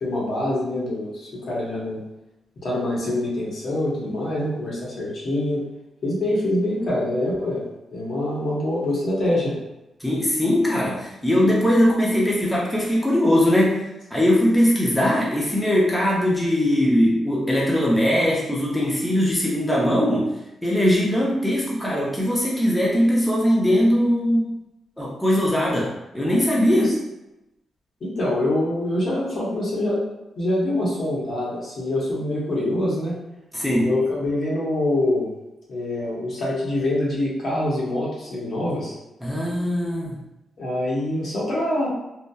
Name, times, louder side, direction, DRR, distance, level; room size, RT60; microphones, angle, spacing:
voice 1, 0.0-2.0 2.6-5.6 6.0-7.6 7.9-9.5 26.7-26.8 28.0-30.0 30.4-33.2 33.8-35.3 35.7-38.9 40.6-41.9, left 1 dB, 55° left, -5 dB, 0.9 m, -25 dB
voice 2, 10.0-20.3 20.6-24.4 25.0-26.9 33.5-33.9 39.2-40.2, equal, 5° left, -6 dB, 0.6 m, -20 dB
2.7 x 2.1 x 2.2 m, 0.94 s
cardioid pair, 95°, 0 cm